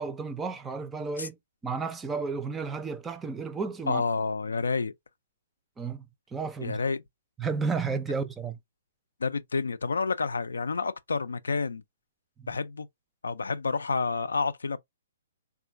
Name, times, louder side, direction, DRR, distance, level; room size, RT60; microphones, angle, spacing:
voice 1, 0.0-1.4 1.6-4.0 5.8-6.0 6.3-6.8 7.4-8.6 12.4-12.5, right 4 dB, 10° right, 0.4 m, -32 dB
voice 2, 3.9-4.9 6.6-7.0 9.2-11.8 12.5-12.9 13.2-14.8, left 4 dB, 70° left, 0.3 m, -29 dB
3.5 x 2.4 x 2.4 m
figure-of-eight pair, 125°, 0 cm